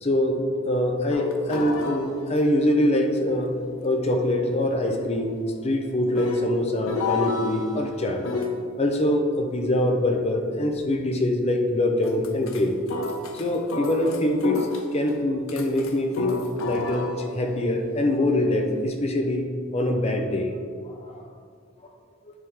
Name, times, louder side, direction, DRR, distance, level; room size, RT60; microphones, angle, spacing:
voice 1, 0.0-3.6 3.8-8.3 8.8-12.8 13.3-14.7 14.9-20.5 20.8-21.3, left 1 dB, 30° left, 3 dB, 0.6 m, -24 dB
sound 1, 1.1-8.6 12.0-12.6 12.9-15.1 15.5-18.8, left 3 dB, 75° left, 0.6 m, -33 dB
9.6 x 3.5 x 3.6 m, 2.1 s
head